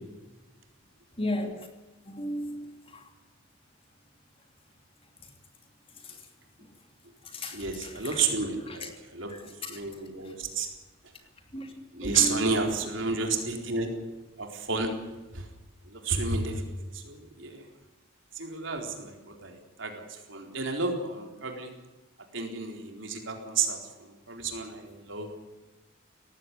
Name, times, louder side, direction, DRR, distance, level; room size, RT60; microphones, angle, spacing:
voice 1, 1.2-1.7 2.1-3.0 6.0-6.2 7.2-8.3 8.7-8.9 9.3-9.8 11.5-11.7 12.0-12.5, left 1 dB, 25° left, 5 dB, 2.8 m, -35 dB
voice 2, 7.5-9.3 9.7-10.7 11.9-13.9 14.4-14.9 15.3-15.4 15.9-17.6 18.4-21.7 22.3-25.3, right 4 dB, 65° right, 4 dB, 4.1 m, -31 dB
19.0 x 15.5 x 9.9 m, 1.1 s
head